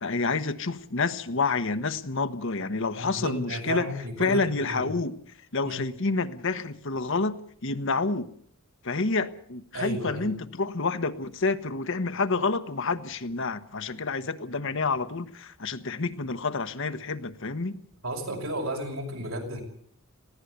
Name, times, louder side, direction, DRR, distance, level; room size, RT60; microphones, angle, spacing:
voice 1, 0.0-3.9 4.2-5.1 5.5-7.3 7.6-8.3 8.8-17.8, left 3 dB, 65° left, 10 dB, 1.2 m, -28 dB
voice 2, 2.9-4.9 5.6-5.8 9.7-10.3 18.0-19.6, right 1 dB, 85° right, 2 dB, 6.1 m, -33 dB
20.0 x 16.0 x 8.1 m, 0.63 s
head